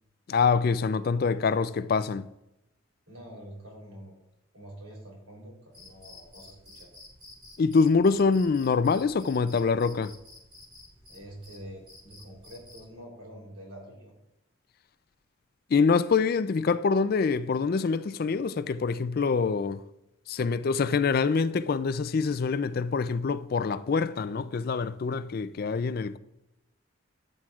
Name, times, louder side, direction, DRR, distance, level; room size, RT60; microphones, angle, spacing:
voice 1, 0.3-2.3 7.6-10.1 15.7-19.8 20.3-26.2, left 5 dB, 45° left, 0.3 m, -25 dB
voice 2, 3.1-4.1 4.5-6.9 11.1-14.1, equal, 85° right, 3.4 m, -46 dB
Cricket, 5.7-12.9, left 2 dB, 25° right, 3.5 m, -52 dB
14.0 x 7.6 x 2.4 m
head